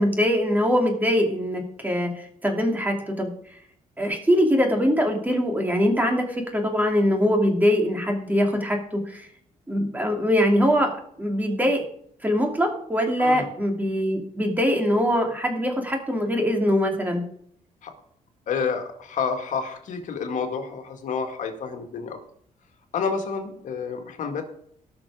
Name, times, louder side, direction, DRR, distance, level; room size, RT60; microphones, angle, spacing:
voice 1, 0.0-3.3 4.0-9.3 9.7-11.8 12.2-17.2, equal, 10° right, 2 dB, 2.6 m, -23 dB
voice 2, 13.2-13.5 17.8-17.9 18.5-22.2 22.9-24.4, left 5 dB, 70° left, 4 dB, 2.0 m, -29 dB
18.0 x 6.2 x 4.9 m, 0.67 s
cardioid pair, 120°, 13 cm